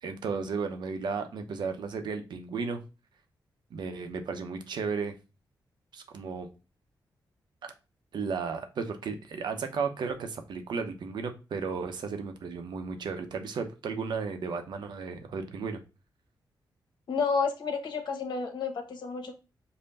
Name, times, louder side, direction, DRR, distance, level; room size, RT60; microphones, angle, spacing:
voice 1, 0.0-2.8 3.7-5.1 5.9-6.5 8.1-15.8, right 5 dB, 75° right, 6 dB, 0.7 m, -34 dB
voice 2, 17.1-19.4, left 5 dB, 75° left, 4 dB, 1.1 m, -30 dB
5.5 x 2.2 x 4.0 m, 0.30 s
cardioid pair, 100°, 8 cm